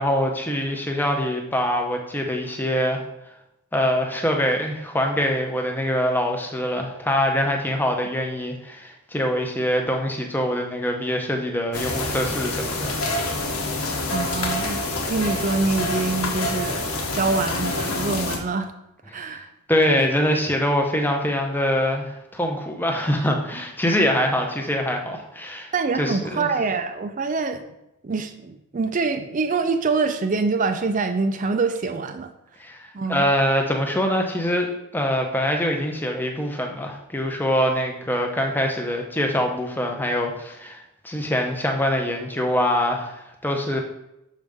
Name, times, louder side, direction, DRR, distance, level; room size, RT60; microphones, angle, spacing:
voice 1, 0.0-3.0 3.7-13.0 19.1-19.4 19.7-26.5 32.6-43.8, equal, 10° left, 2 dB, 0.7 m, -24 dB
sound 1, 11.7-18.4, left 2 dB, 80° left, 1.2 m, -27 dB
voice 2, 14.1-18.7 19.1-19.5 20.0-20.1 25.7-27.6 28.0-32.3 32.9-33.3, right 4 dB, 35° right, 8 dB, 0.4 m, -25 dB
6.4 x 5.2 x 3.5 m, 0.89 s
head